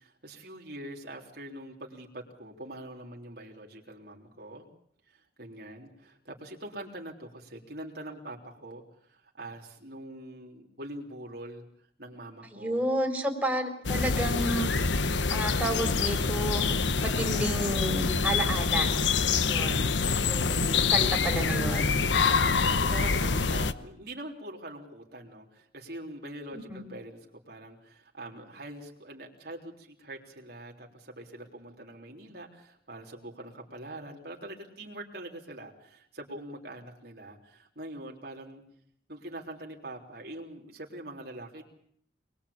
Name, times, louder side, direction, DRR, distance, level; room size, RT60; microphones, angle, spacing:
voice 1, 0.0-4.7 5.1-11.7 12.0-12.9 22.2-38.6 39.1-41.6, right 1 dB, 55° right, 1 dB, 3.6 m, -44 dB
voice 2, 12.5-14.9 15.3-16.6 17.0-18.9 19.4-19.9 20.2-21.9 26.5-26.9, right 1 dB, 5° right, 1 dB, 4.4 m, -31 dB
sound 1, 13.8-23.7, left 5 dB, 75° left, 1.1 m, -26 dB
27.0 x 21.0 x 8.6 m, 0.68 s
head